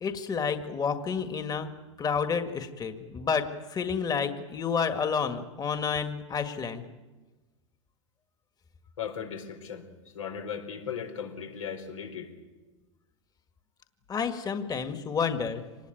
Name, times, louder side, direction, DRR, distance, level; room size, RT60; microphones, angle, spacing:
voice 1, 0.0-1.7 2.0-6.8 14.1-15.6, left 6 dB, 25° left, 7 dB, 1.8 m, -30 dB
voice 2, 9.0-9.9 10.1-12.3, left 7 dB, 90° left, 4 dB, 4.7 m, -37 dB
25.5 x 20.0 x 9.2 m, 1.3 s
hypercardioid pair, 105°, 17 cm